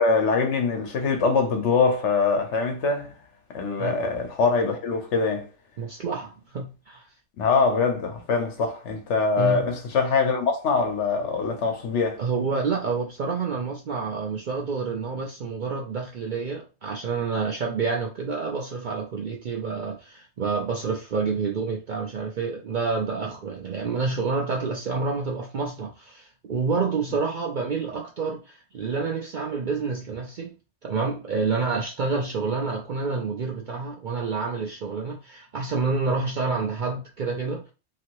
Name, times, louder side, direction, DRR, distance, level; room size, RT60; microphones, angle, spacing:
voice 1, 0.0-3.1 3.5-5.5 7.4-12.2, left 4 dB, 70° left, 1.1 m, -23 dB
voice 2, 5.8-7.1 9.4-9.7 12.2-30.5 30.8-37.6, right 4 dB, 55° right, 0.6 m, -28 dB
2.9 x 2.6 x 2.9 m
omnidirectional pair, 1.2 m